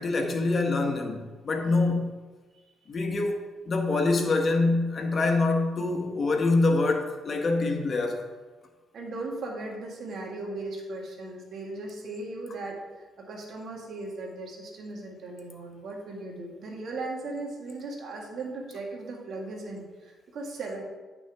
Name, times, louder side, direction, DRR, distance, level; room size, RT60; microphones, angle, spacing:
voice 1, 0.0-2.1 2.9-8.3, left 3 dB, 40° left, 3 dB, 1.3 m, -25 dB
voice 2, 8.9-12.8 13.2-20.8, right 2 dB, 65° right, 0 dB, 2.0 m, -37 dB
10.0 x 6.0 x 3.6 m, 1.3 s
cardioid pair, 90°, 0 cm